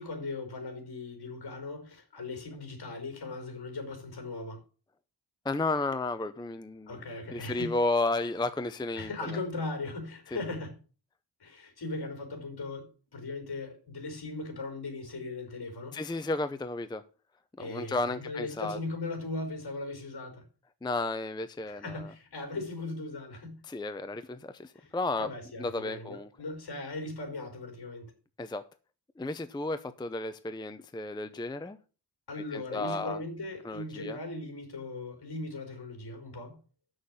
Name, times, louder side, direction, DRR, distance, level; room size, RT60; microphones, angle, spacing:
voice 1, 0.0-4.6 6.9-7.8 9.0-10.8 11.4-16.0 17.6-20.4 21.7-23.6 24.8-24.9 25.2-28.1 32.3-36.6, left 2 dB, 65° left, 4.0 m, -38 dB
voice 2, 5.4-9.4 10.3-10.4 15.9-17.0 17.6-18.8 20.8-22.1 23.7-25.3 25.6-26.3 28.4-28.6 29.2-31.8 32.5-33.2 33.6-34.2, left 2 dB, 10° left, 0.5 m, -33 dB
7.3 x 6.4 x 7.9 m
wide cardioid pair, 140°, 42 cm